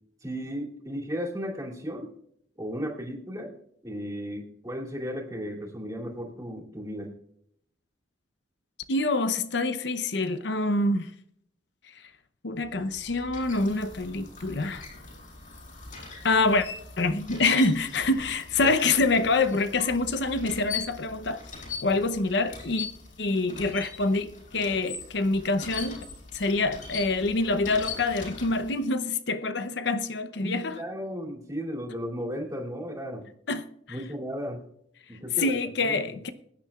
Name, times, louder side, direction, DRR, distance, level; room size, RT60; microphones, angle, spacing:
voice 1, 0.2-2.1 2.6-3.5 3.8-7.1 18.6-18.7 30.4-33.2 33.9-34.6 35.1-36.2, equal, 20° right, 2.7 m, -35 dB
voice 2, 8.9-11.1 11.8-12.1 12.4-14.9 16.2-16.7 17.0-21.4 21.8-22.9 23.2-26.0 26.3-30.8 33.5-34.0 35.4-36.3, left 3 dB, 60° left, 0.7 m, -26 dB
sound 1, 12.6-28.9, left 5 dB, 45° left, 5.7 m, -41 dB
22.0 x 10.0 x 2.4 m
head